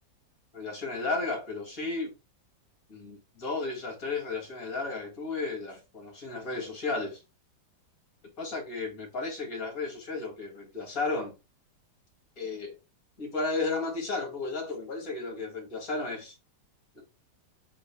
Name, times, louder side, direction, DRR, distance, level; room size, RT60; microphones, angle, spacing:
voice 1, 0.5-2.1 2.9-7.2 8.4-11.3 12.4-12.8 13.2-16.4 16.9-17.0, left 3 dB, 50° left, 2.1 m, -33 dB
4.2 x 3.8 x 3.4 m
omnidirectional pair, 2.1 m